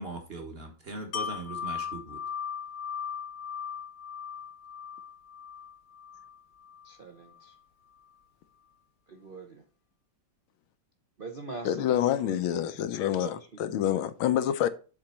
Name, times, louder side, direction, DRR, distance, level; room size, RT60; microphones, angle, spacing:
voice 1, 0.0-2.2, right 2 dB, 35° right, 1.2 m, -39 dB
Wind chime, 1.1-6.9 7.3-7.5, left 7 dB, 65° left, 1.2 m, -38 dB
voice 2, 6.8-7.5 9.1-9.6 11.2-12.6 12.9-13.4 13.7-13.9, right 3 dB, 55° right, 0.5 m, -43 dB
voice 3, 11.6-14.7, left 11 dB, 90° left, 1.5 m, -27 dB
7.4 x 3.9 x 5.6 m
omnidirectional pair, 2.2 m